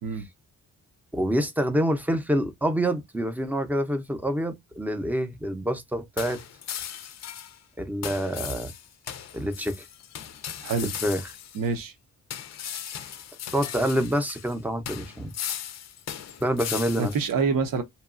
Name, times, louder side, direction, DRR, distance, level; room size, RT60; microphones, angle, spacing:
voice 1, 1.1-6.4 7.8-8.7 9.3-9.8 10.8-11.2 13.5-15.3 16.4-17.1, equal, 5° right, 0.5 m, -27 dB
sound 1, 6.2-7.6 8.0-11.7 12.3-14.6 14.9-17.3, left 9 dB, 50° left, 0.4 m, -37 dB
voice 2, 11.5-11.9 17.0-17.8, right 4 dB, 70° right, 0.8 m, -26 dB
2.9 x 2.3 x 2.4 m
wide cardioid pair, 120°, 35 cm